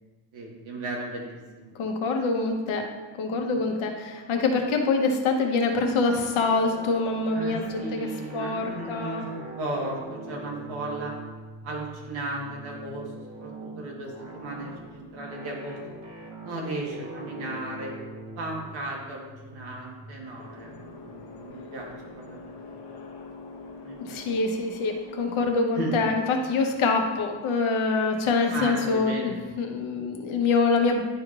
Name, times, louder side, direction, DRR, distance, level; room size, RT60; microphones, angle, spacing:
voice 1, 0.3-1.7 3.5-3.7 7.3-11.1 11.6-15.8 16.4-17.9 18.4-22.4 22.7-23.0 23.8-24.3 25.7-25.9 28.5-29.4, right 2 dB, 70° right, -2 dB, 1.4 m, -36 dB
voice 2, 1.7-2.9 3.1-8.1 8.3-9.2 24.1-31.0, left 4 dB, 75° left, 3 dB, 1.1 m, -25 dB
sound 1, 6.2-22.7, right 2 dB, 35° right, 0.9 m, -43 dB
sound 2, 20.4-25.5, left 3 dB, 55° left, 1.0 m, -44 dB
11.0 x 4.8 x 2.4 m, 1.3 s
cardioid pair, 170°, 49 cm